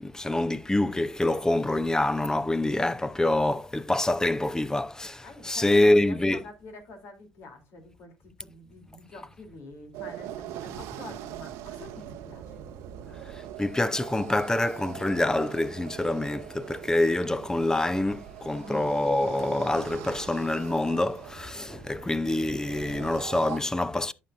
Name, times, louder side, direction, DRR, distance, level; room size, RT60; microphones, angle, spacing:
voice 1, 0.0-6.4 13.6-24.1, left 1 dB, 10° left, 0.7 m, -26 dB
voice 2, 5.2-12.7 13.1-13.2 18.6-18.9, left 2 dB, 60° left, 3.2 m, -46 dB
sound 1, 9.9-23.6, right 11 dB, 70° right, 0.8 m, -42 dB
11.0 x 7.6 x 2.5 m
hypercardioid pair, 60°, 5 cm